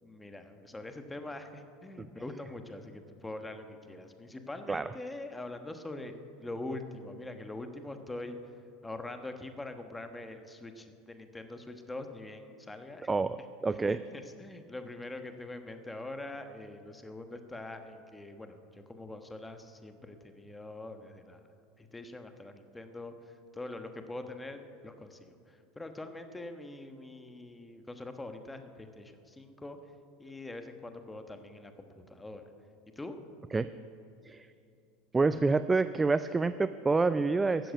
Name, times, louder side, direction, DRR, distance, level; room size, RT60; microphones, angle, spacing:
voice 1, 0.0-13.1 13.7-21.4 21.8-29.8 30.2-32.5 32.9-33.2, left 2 dB, 10° left, 7 dB, 1.2 m, -44 dB
voice 2, 13.6-14.0 33.5-33.7 34.3-34.5 35.1-37.7, right 3 dB, 15° right, 13 dB, 0.3 m, -27 dB
13.5 x 7.7 x 9.2 m, 2.7 s
supercardioid pair, 115°, 0 cm